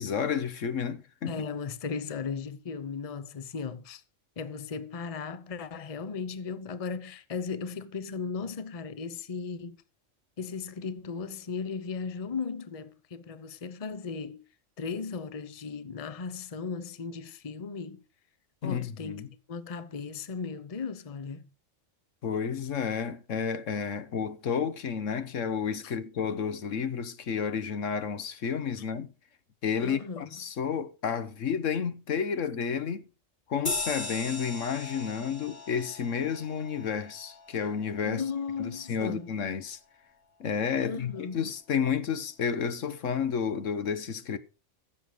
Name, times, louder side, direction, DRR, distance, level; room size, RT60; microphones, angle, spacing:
voice 1, 0.0-1.4 18.6-19.3 22.2-29.1 29.6-33.0 33.5-38.2 38.6-39.8 40.4-44.4, left 7 dB, 75° left, 1.4 m, -31 dB
voice 2, 1.3-4.0 4.4-9.8 10.4-14.5 14.8-18.0 18.6-21.5 25.8-25.9 29.8-30.3 38.0-39.3 40.8-41.5, left 5 dB, 30° left, 0.8 m, -36 dB
sound 1, 33.7-38.6, left 3 dB, 55° left, 3.0 m, -38 dB
14.5 x 7.6 x 5.0 m
omnidirectional pair, 1.3 m